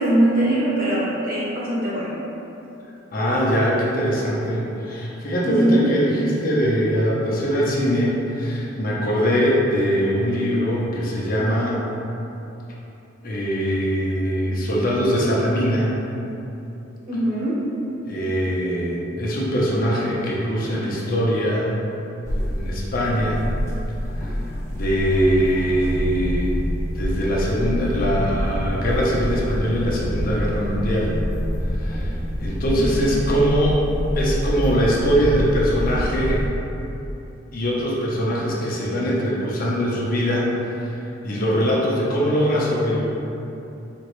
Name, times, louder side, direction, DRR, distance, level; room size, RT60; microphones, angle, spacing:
voice 1, 0.0-2.1 5.4-5.9 17.1-17.6 32.7-33.0, right 1 dB, 50° right, -8 dB, 1.2 m, -21 dB
voice 2, 3.1-11.8 13.2-16.0 18.0-21.7 22.3-23.5 24.1-24.3 24.7-26.6 26.9-31.1 31.7-32.1 32.4-33.8 34.1-36.4 37.5-40.5 40.8-40.9 41.2-43.0, equal, 50° left, -5 dB, 0.7 m, -22 dB
sound 1, 22.2-36.5, equal, 15° left, 0.8 m, -26 dB
4.4 x 2.9 x 3.0 m, 2.9 s
head